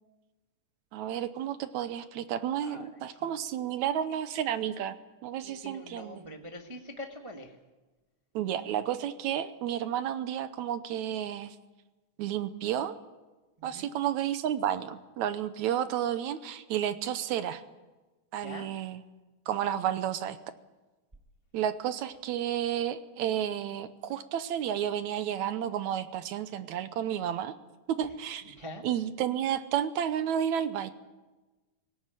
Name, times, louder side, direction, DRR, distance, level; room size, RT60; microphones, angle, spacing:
voice 1, 0.9-4.9 5.2-6.2 8.4-11.6 12.2-13.0 13.6-17.6 18.3-19.0 19.5-20.4 21.5-27.5 27.9-28.6 28.8-30.9, right 10 dB, 75° right, 12 dB, 2.1 m, -31 dB
voice 2, 2.6-3.0 5.4-7.5 13.6-13.9 18.4-18.7 28.4-28.8, left 1 dB, 25° right, 2 dB, 0.6 m, -44 dB
18.5 x 17.5 x 9.1 m, 1.2 s
omnidirectional pair, 3.6 m